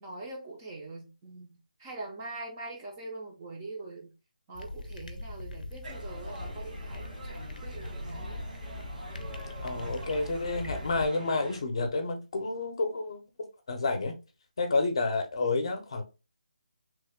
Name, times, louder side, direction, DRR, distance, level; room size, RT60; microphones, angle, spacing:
voice 1, 0.0-4.1 4.5-8.5, right 2 dB, 15° right, 0.4 m, -43 dB
sound 1, 4.5-11.1, left 2 dB, 85° left, 0.5 m, -41 dB
sound 2, 5.8-11.6, right 1 dB, 85° right, 1.3 m, -45 dB
voice 2, 9.6-13.2 13.7-14.2 14.6-16.0, left 3 dB, 40° left, 0.6 m, -29 dB
3.1 x 2.1 x 3.5 m
hypercardioid pair, 170°, 4 cm